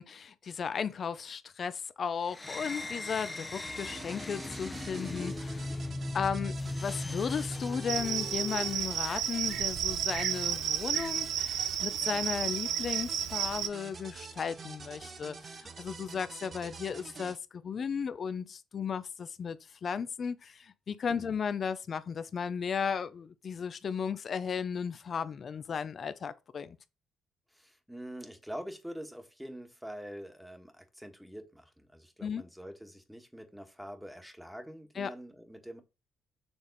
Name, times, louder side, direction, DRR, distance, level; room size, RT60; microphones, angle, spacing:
voice 1, 0.0-5.8 6.1-26.8 32.2-32.4 35.0-35.1, left 6 dB, 50° left, 0.6 m, -35 dB
sound 1, 2.3-8.9, left 2 dB, 20° left, 0.9 m, -38 dB
sound 2, 3.7-17.4, right 4 dB, 45° right, 0.8 m, -47 dB
Cricket, 7.9-13.7, right 10 dB, 80° right, 0.6 m, -32 dB
voice 2, 27.5-35.8, equal, 5° right, 1.4 m, -45 dB
7.0 x 3.5 x 4.1 m
supercardioid pair, 75°, 0 cm